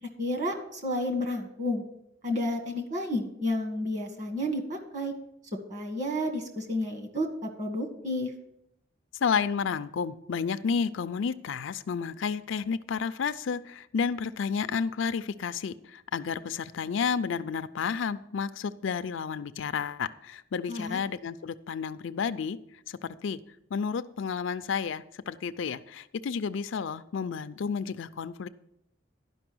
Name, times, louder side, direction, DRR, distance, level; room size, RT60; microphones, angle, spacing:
voice 1, 0.0-1.8 2.2-5.1 5.7-8.3 20.7-21.0, left 1 dB, 35° right, 3 dB, 1.5 m, -31 dB
voice 2, 9.2-22.6 22.9-23.4 23.7-28.5, left 6 dB, 75° left, 13 dB, 0.4 m, -31 dB
11.5 x 5.4 x 6.1 m, 0.78 s
head